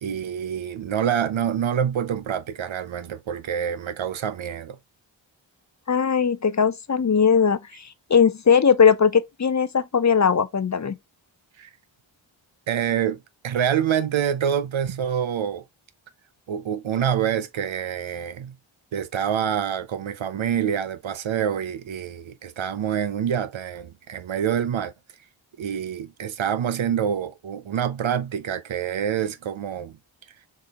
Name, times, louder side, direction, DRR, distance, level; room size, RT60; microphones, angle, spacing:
voice 1, 0.0-4.8 11.6-11.7 12.7-15.6 16.5-18.5 18.9-24.9 25.6-30.0, right 8 dB, 75° right, 0.7 m, -26 dB
voice 2, 5.9-10.9, left 6 dB, 40° left, 0.5 m, -19 dB
6.3 x 2.4 x 2.8 m
cardioid pair, 40°, 47 cm